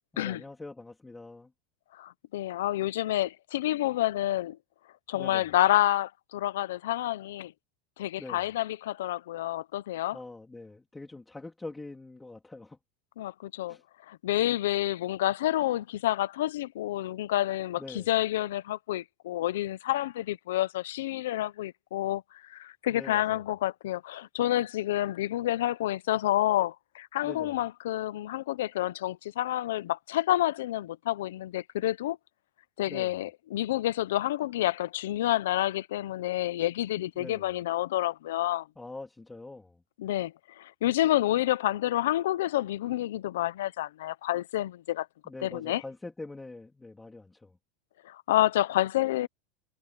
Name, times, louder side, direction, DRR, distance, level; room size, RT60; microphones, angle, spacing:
voice 1, 0.1-1.5 5.1-5.5 8.2-8.5 10.1-12.8 13.7-13.8 17.8-18.1 22.9-23.4 27.2-27.6 32.9-33.2 37.2-37.5 38.8-39.8 45.2-47.6, left 2 dB, 5° left, 3.2 m, -44 dB
voice 2, 1.9-4.6 5.1-7.5 8.0-10.2 13.2-13.8 14.1-32.2 32.8-38.7 40.0-45.1 45.4-45.8 48.0-49.3, left 14 dB, 85° left, 0.8 m, -29 dB
supercardioid pair, 170°, 0 cm